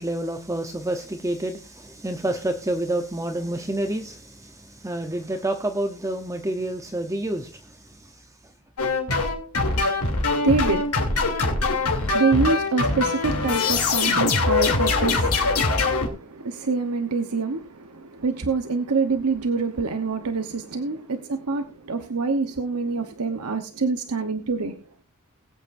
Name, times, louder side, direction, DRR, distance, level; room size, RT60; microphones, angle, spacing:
voice 1, 0.0-7.6, right 1 dB, 15° right, 0.8 m, -28 dB
sound 1, 8.8-16.1, left 3 dB, 85° left, 2.9 m, -23 dB
voice 2, 10.1-24.8, right 4 dB, 90° right, 1.0 m, -26 dB
21.0 x 8.6 x 2.6 m
head